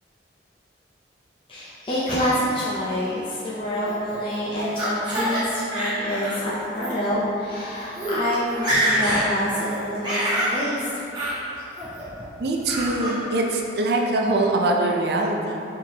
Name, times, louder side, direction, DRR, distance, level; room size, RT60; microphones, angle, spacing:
voice 1, 1.5-11.0 11.8-12.2, equal, 30° left, -9 dB, 0.5 m, -27 dB
Laughter, 3.9-5.4 5.7-6.4 6.8-6.9 7.6-7.7 7.9-8.2 8.5-9.3 9.6-10.5 11.1-11.4 11.8-12.2 12.7-13.2, right 1 dB, 25° right, 1.5 m, -26 dB
voice 2, 12.4-15.6, right 2 dB, 55° right, 1 dB, 0.4 m, -23 dB
4.6 x 3.7 x 2.8 m, 2.8 s
head